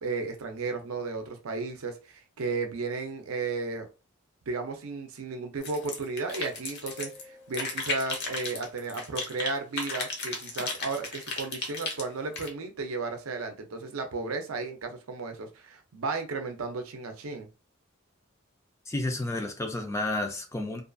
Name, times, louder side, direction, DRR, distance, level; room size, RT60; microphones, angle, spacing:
voice 1, 0.0-3.9 4.5-17.5, right 3 dB, 75° right, 0.5 m, -34 dB
sound 1, 5.6-7.2 7.5-9.5 9.8-12.5, left 3 dB, 50° left, 0.7 m, -34 dB
sound 2, 6.9-8.4, left 3 dB, 75° left, 1.1 m, -53 dB
voice 2, 18.9-20.8, left 2 dB, 15° left, 0.3 m, -31 dB
2.5 x 2.3 x 2.5 m
head